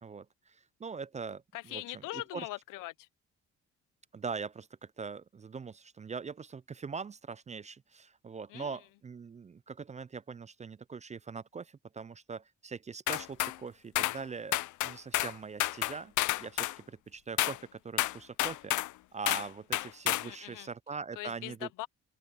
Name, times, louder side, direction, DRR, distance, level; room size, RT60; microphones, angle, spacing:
voice 1, 0.0-2.5 4.1-16.1 16.4-18.7 19.1-21.7, right 5 dB, 25° right, 0.4 m, -42 dB
voice 2, 1.5-3.1 8.5-8.8 20.2-20.7 21.2-21.9, left 18 dB, 90° left, 0.8 m, -41 dB
sound 1, 13.1-13.6 14.0-14.2 14.5-15.3 15.6-16.8 17.4-17.6 18.0-18.9 19.3-19.5 19.7-20.3, left 16 dB, 70° left, 0.5 m, -30 dB
open air
supercardioid pair, 60°, 31 cm